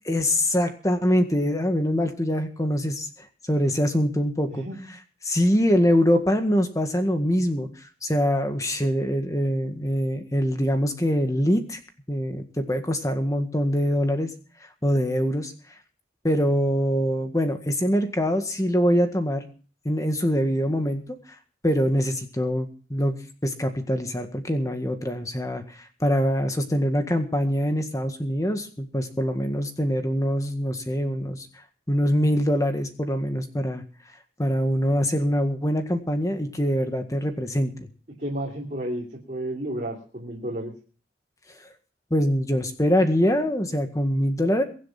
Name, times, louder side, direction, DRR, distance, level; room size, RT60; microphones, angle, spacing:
voice 1, 0.1-4.6 5.2-7.7 8.0-11.8 12.1-14.3 14.8-15.5 16.2-19.4 19.9-21.2 21.6-31.5 31.9-33.8 34.4-37.9 42.1-44.6, equal, 20° left, 7 dB, 1.7 m, -24 dB
voice 2, 4.5-4.8 38.2-40.7, right 1 dB, 40° right, -3 dB, 3.0 m, -32 dB
23.0 x 7.6 x 5.8 m, 0.40 s
head